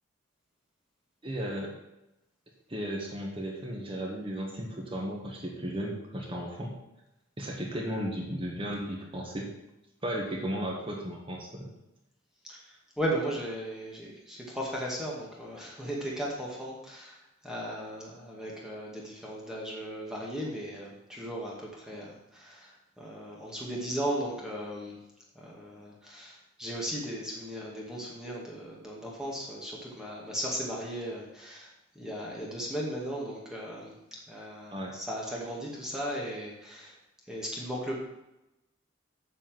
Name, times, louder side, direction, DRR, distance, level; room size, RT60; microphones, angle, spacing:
voice 1, 1.2-1.7 2.7-6.7 7.4-9.5 10.0-11.7 34.7-35.0, equal, 25° right, -1 dB, 1.6 m, -35 dB
voice 2, 12.5-25.0 25.4-34.0 34.3-37.0 37.3-38.0, equal, 5° right, -4 dB, 2.1 m, -36 dB
7.8 x 6.5 x 7.7 m, 0.93 s
head